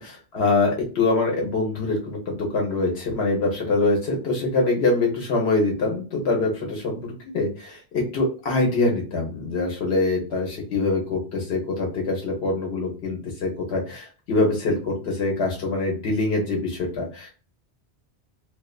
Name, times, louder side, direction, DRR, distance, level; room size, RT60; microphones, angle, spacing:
voice 1, 0.0-17.3, left 3 dB, 75° left, 0 dB, 1.1 m, -24 dB
2.4 x 2.3 x 2.3 m, 0.34 s
omnidirectional pair, 1.1 m